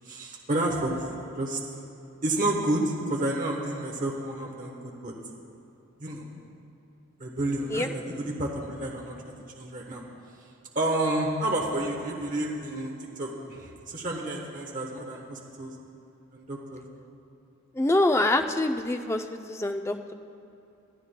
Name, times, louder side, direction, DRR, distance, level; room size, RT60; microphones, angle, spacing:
voice 1, 0.1-1.6 2.2-5.1 6.0-6.3 7.2-10.0 10.7-15.7 16.3-16.8, right 1 dB, 40° right, -1 dB, 1.0 m, -30 dB
voice 2, 17.7-20.1, left 1 dB, 10° left, 6 dB, 0.3 m, -25 dB
21.5 x 13.0 x 2.2 m, 2.8 s
head